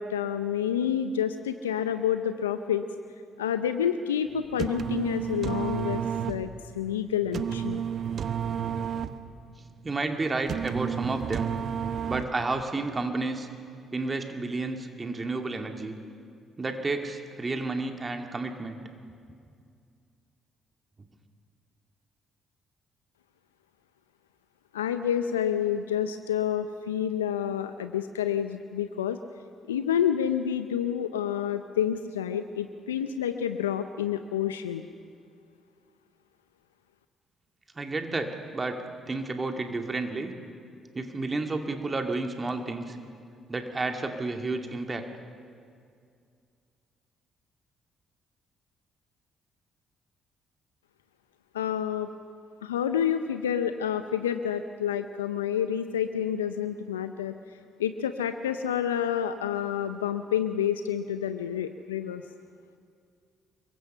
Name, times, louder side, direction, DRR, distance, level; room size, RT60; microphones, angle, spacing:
voice 1, 0.0-2.8 3.4-6.5 6.7-7.8 24.7-29.2 29.7-34.9 51.5-52.1 52.6-57.3 57.8-62.2, left 9 dB, 90° left, 10 dB, 0.5 m, -29 dB
sound 1, 4.4-12.6, right 8 dB, 55° right, 0.9 m, -32 dB
voice 2, 9.8-11.5 12.1-13.5 13.9-16.0 16.6-18.8 37.8-38.8 39.1-40.3 40.9-43.0 43.5-45.1, right 3 dB, 30° right, 5 dB, 2.4 m, -31 dB
25.5 x 22.5 x 5.6 m, 2.3 s
hypercardioid pair, 45°, 0 cm